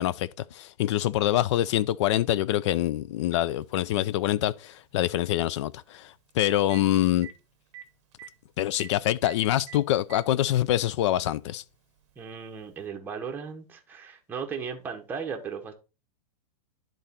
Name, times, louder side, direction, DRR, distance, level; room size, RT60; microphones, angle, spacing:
voice 1, 0.0-7.3 8.6-11.6, left 13 dB, 45° left, 0.4 m, -25 dB
Telephone, 3.6-3.7 5.9-6.0 6.3-6.8 7.2-7.3 7.7-7.8 8.1-8.3 8.8-8.9 9.2-9.4 9.7-10.2 11.2-11.3 12.8-12.9, right 10 dB, 45° right, 0.8 m, -44 dB
voice 2, 12.2-15.7, right 6 dB, 10° right, 0.8 m, -36 dB
10.5 x 3.9 x 4.2 m
supercardioid pair, 165°, 21 cm